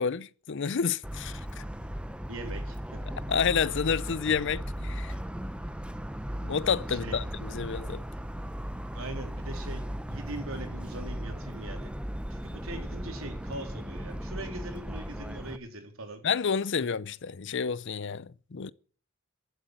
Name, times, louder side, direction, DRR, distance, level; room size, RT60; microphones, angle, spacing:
voice 1, 0.0-1.6 3.3-5.1 6.4-8.0 16.2-18.7, left 6 dB, 60° left, 0.6 m, -29 dB
Motor vehicle (road) / Siren, 1.0-15.6, equal, 5° right, 0.8 m, -37 dB
voice 2, 2.3-2.8 6.9-7.2 8.9-9.8 10.1-11.9 12.3-16.2, right 2 dB, 80° right, 3.7 m, -41 dB
14.5 x 8.0 x 8.8 m
head